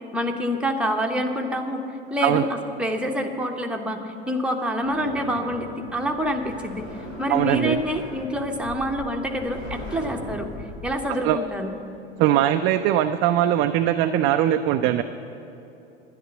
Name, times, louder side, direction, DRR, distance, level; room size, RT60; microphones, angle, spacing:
voice 1, 0.1-1.8 2.1-6.9 7.2-10.5 10.8-11.7, equal, 5° right, 2 dB, 1.1 m, -26 dB
sound 1, 4.8-11.0, left 1 dB, 70° left, 2.6 m, -39 dB
voice 2, 7.3-7.8 11.2-11.4 12.2-15.0, right 12 dB, 35° right, 8 dB, 0.4 m, -21 dB
10.5 x 10.5 x 6.9 m, 2.9 s
figure-of-eight pair, 75°, 32 cm